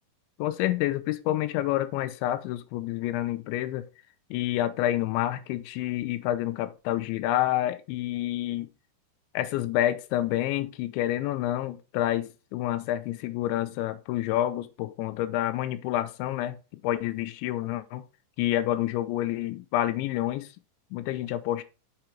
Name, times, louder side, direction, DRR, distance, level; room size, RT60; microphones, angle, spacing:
voice 1, 0.4-3.9 4.3-8.7 9.3-16.6 16.8-18.0 18.4-20.5 20.9-21.6, left 13 dB, 85° left, 2.9 m, -28 dB
6.7 x 5.9 x 4.4 m
omnidirectional pair, 5.4 m